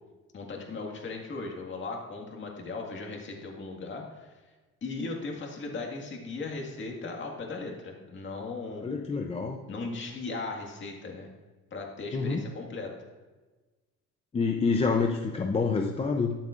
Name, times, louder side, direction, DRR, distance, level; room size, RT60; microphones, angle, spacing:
voice 1, 0.3-4.4 4.8-8.9 9.7-11.3 11.7-12.9, left 3 dB, 40° left, 1 dB, 1.9 m, -37 dB
voice 2, 8.8-9.6 12.1-12.4 14.3-16.4, left 4 dB, 20° left, 2 dB, 0.5 m, -27 dB
20.5 x 7.3 x 2.5 m, 1.2 s
cardioid pair, 150°, 31 cm